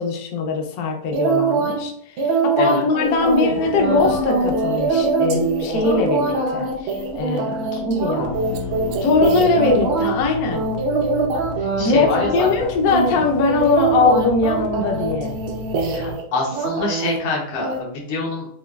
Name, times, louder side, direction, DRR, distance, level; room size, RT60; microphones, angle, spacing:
voice 1, 0.0-1.9 2.2-8.3 9.0-10.6 11.8-15.3, left 3 dB, 70° left, 2 dB, 0.9 m, -21 dB
sound 1, 1.1-1.8 2.2-10.1 10.5-11.8 12.1-12.6 12.9-16.2 16.5-17.2 17.6-17.8, right 4 dB, 75° right, 1.4 m, -23 dB
sound 2, 3.0-10.7, left 4 dB, 45° left, 0.7 m, -31 dB
sound 3, 8.2-16.1, left 5 dB, 60° right, 0.8 m, -34 dB
voice 2, 11.6-12.7 15.8-18.5, left 3 dB, 85° left, -2 dB, 1.9 m, -26 dB
6.5 x 2.3 x 2.3 m, 0.67 s
omnidirectional pair, 2.3 m